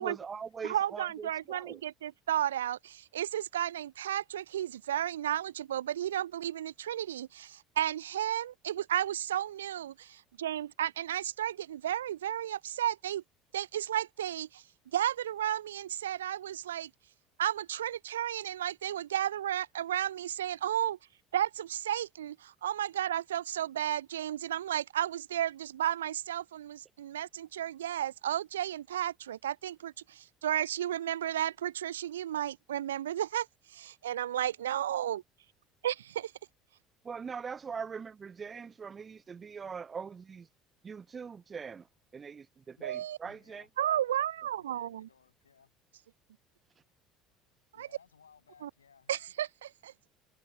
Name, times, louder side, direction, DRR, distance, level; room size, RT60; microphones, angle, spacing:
voice 1, 0.0-1.8 37.0-40.5 40.8-41.9 42.1-43.7, right 6 dB, 30° right, 0.7 m, -42 dB
voice 2, 0.6-13.2 13.5-14.6 14.9-16.9 17.4-21.0 21.3-35.2 35.8-36.3 42.8-43.2 43.8-45.1 47.8-47.9 48.6-48.7 49.1-50.1, right 11 dB, 75° right, 0.9 m, -33 dB
voice 3, 43.2-44.1 44.6-45.7 47.7-49.2, left 6 dB, 80° left, 7.9 m, -62 dB
figure-of-eight pair, 60°, 0 cm